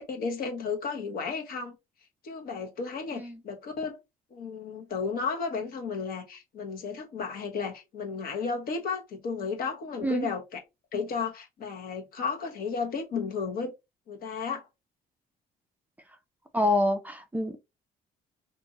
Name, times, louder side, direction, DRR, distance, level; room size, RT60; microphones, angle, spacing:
voice 1, 0.1-1.8 2.2-4.0 4.3-10.6 10.9-13.7 14.1-14.6, left 5 dB, 60° left, 1.0 m, -33 dB
voice 2, 16.5-17.6, left 1 dB, 10° right, 0.4 m, -27 dB
2.7 x 2.6 x 2.8 m
cardioid pair, 110°, 17 cm